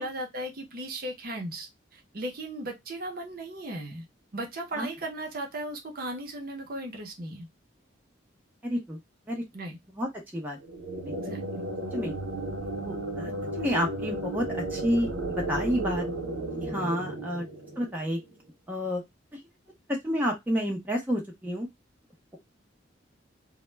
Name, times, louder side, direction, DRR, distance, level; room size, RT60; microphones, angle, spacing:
voice 1, 0.0-4.1 4.3-7.5 9.5-9.8 11.2-11.4, right 1 dB, 50° right, 0.6 m, -36 dB
voice 2, 8.6-9.0 9.3-9.4 9.9-10.6 11.1-11.2 11.9-12.1 12.8-16.1 16.6-17.4 17.8-18.2 18.7-19.0 19.3-19.4 19.9-21.7, equal, 10° right, 0.5 m, -30 dB
sound 1, 10.6-18.2, right 2 dB, 90° right, 0.7 m, -34 dB
2.1 x 2.0 x 3.2 m
head